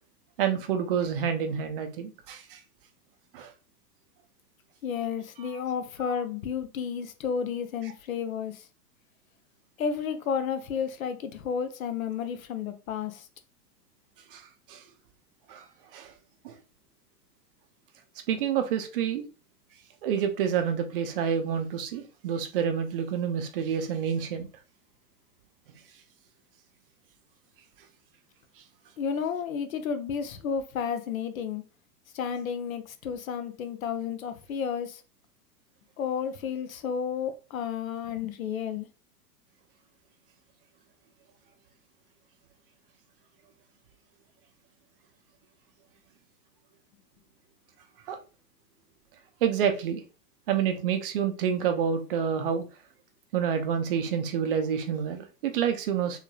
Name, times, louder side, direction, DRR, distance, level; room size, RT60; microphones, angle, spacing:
voice 1, 0.4-2.6 3.3-3.5 14.3-14.8 15.5-15.6 15.9-16.1 16.4-16.5 18.3-19.2 20.0-24.5 48.1-48.2 49.4-50.0 50.5-52.7 53.3-56.2, right 8 dB, 35° right, 0.6 m, -28 dB
voice 2, 4.8-8.6 9.8-13.3 29.0-31.6 32.1-35.0 36.0-38.9, left 7 dB, 55° left, 0.7 m, -32 dB
3.5 x 3.2 x 2.3 m
figure-of-eight pair, 105°, 50 cm